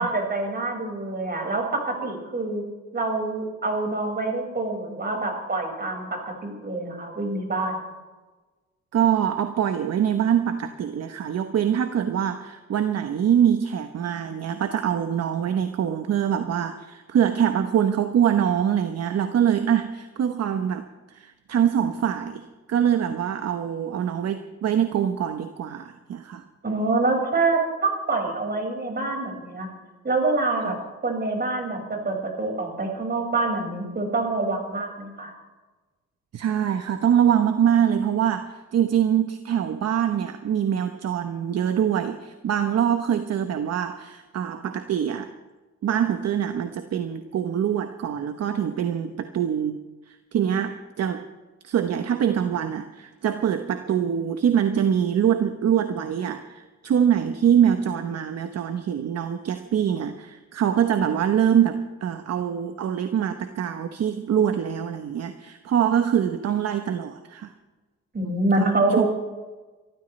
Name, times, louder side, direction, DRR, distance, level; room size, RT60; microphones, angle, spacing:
voice 1, 0.0-2.6 2.9-7.9 26.6-29.7 30.0-30.8 31.0-35.3 68.1-69.0, right 2 dB, 35° right, 1 dB, 5.4 m, -26 dB
voice 2, 8.9-26.4 36.3-45.3 45.8-51.2 51.6-67.5 68.2-69.0, right 9 dB, 55° right, 8 dB, 1.0 m, -24 dB
27.5 x 14.0 x 3.3 m, 1.2 s
cardioid pair, 90°, 30 cm